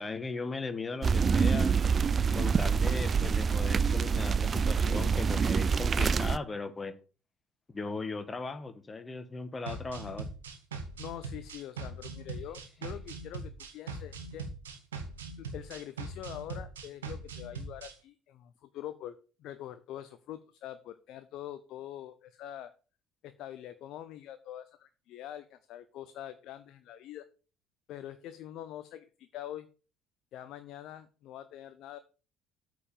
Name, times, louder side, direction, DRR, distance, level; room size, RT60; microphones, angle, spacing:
voice 1, 0.0-1.8 2.3-6.9 7.7-10.3, left 3 dB, 25° left, 10 dB, 1.3 m, -38 dB
sound 1, 1.0-6.4, right 6 dB, 35° right, 0.4 m, -26 dB
sound 2, 9.7-17.9, right 3 dB, 85° right, 1.3 m, -41 dB
voice 2, 11.0-14.5 15.4-22.7 23.2-27.3 27.9-29.7 30.3-32.0, left 11 dB, 60° left, 11 dB, 0.6 m, -44 dB
8.5 x 4.9 x 7.0 m, 0.35 s
hypercardioid pair, 55°, 0 cm